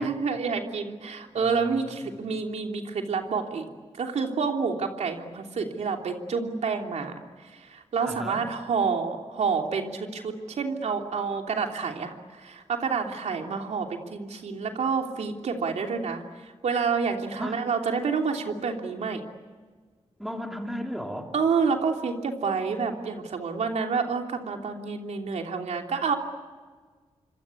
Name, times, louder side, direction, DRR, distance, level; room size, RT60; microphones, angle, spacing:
voice 1, 0.0-3.7 4.0-19.2 21.3-26.2, right 5 dB, 80° right, 3 dB, 3.1 m, -28 dB
voice 2, 1.3-2.1 8.0-8.4 17.4-17.6 20.2-21.3, equal, ahead, 2 dB, 3.4 m, -36 dB
27.5 x 25.5 x 8.5 m, 1.5 s
wide cardioid pair, 145°, 11 cm